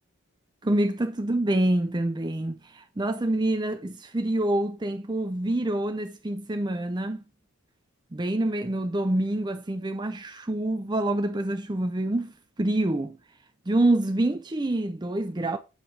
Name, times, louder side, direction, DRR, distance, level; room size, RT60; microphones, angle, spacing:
voice 1, 0.6-7.2 8.1-13.2 13.7-15.6, right 1 dB, 20° right, 0.5 m, -26 dB
8.9 x 5.3 x 4.6 m
head